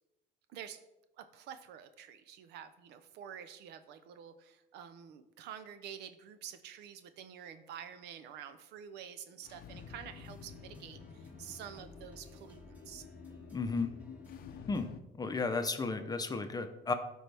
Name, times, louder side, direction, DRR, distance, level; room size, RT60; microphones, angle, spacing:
voice 1, 0.5-0.8 1.2-13.1, right 8 dB, 85° right, 11 dB, 0.7 m, -48 dB
sound 1, 9.4-15.0, left 8 dB, 65° left, 0.6 m, -51 dB
sound 2, 9.7-14.9, equal, 10° right, 1.9 m, -55 dB
voice 2, 13.5-13.9 14.7-14.9 15.2-16.9, left 4 dB, 20° left, 8 dB, 0.7 m, -33 dB
12.5 x 4.5 x 3.4 m, 0.97 s
cardioid pair, 110°, 17 cm